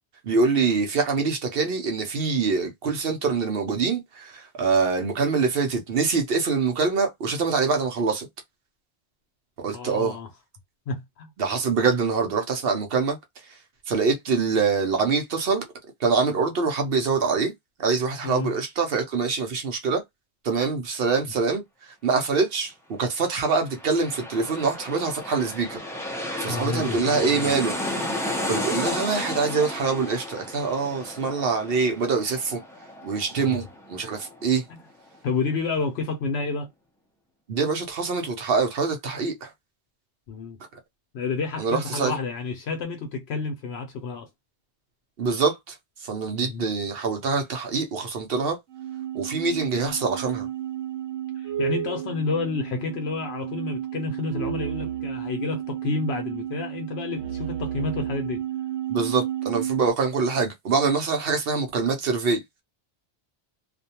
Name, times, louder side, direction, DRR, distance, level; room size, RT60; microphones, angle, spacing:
voice 1, 0.2-8.3 9.6-10.2 11.4-13.2 13.9-15.7 16.0-17.5 17.8-20.0 20.4-21.6 22.0-25.8 26.4-27.8 28.5-32.6 33.0-33.6 33.9-34.6 37.5-39.5 41.6-42.2 45.2-45.7 46.0-48.6 49.1-50.5 58.9-62.4, right 4 dB, 60° right, 0.8 m, -24 dB
voice 2, 9.7-10.3 10.9-11.3 18.2-18.5 26.5-27.5 33.4-33.6 35.2-36.7 40.3-40.6 41.1-44.3 46.4-46.6 51.4-58.4, left 4 dB, 70° left, 0.8 m, -30 dB
sound 1, 23.4-34.8 35.1-35.2, left 1 dB, 5° left, 0.4 m, -33 dB
sound 2, 48.7-59.9, right 11 dB, 85° right, 1.0 m, -32 dB
2.5 x 2.2 x 2.7 m
omnidirectional pair, 1.2 m